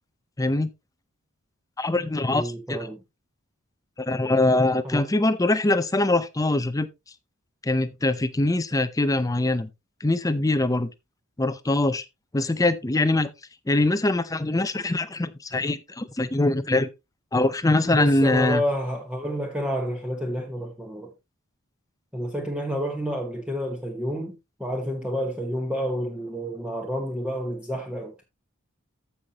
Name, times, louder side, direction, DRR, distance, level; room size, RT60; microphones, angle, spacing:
voice 1, 0.4-0.7 1.8-2.9 4.0-6.9 7.6-9.7 10.0-10.9 11.4-12.0 12.3-13.3 13.7-16.9 17.3-18.6, left 2 dB, 15° left, 0.5 m, -23 dB
voice 2, 2.3-3.0 4.8-5.0 17.9-21.1 22.1-28.2, equal, 5° right, 1.1 m, -29 dB
14.5 x 5.7 x 2.9 m
head